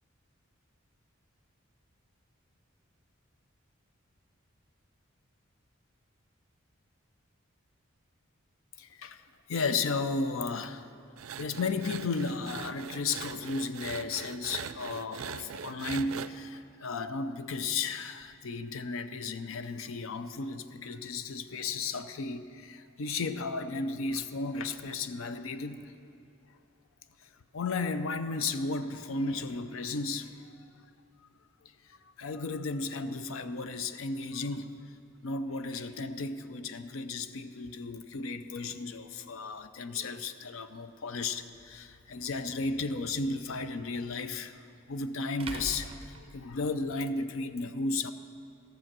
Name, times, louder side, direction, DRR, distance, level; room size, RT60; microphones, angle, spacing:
voice 1, 8.8-9.2 9.5-10.9 11.4-25.9 27.5-30.5 31.9-34.7 35.2-48.1, left 3 dB, 80° left, 11 dB, 0.5 m, -34 dB
sound 1, 11.2-16.3, right 8 dB, 80° right, 0.4 m, -41 dB
sound 2, 41.6-41.7 44.2-44.3 45.4-47.0, right 3 dB, 25° right, 0.6 m, -42 dB
14.0 x 6.9 x 6.0 m, 2.7 s
head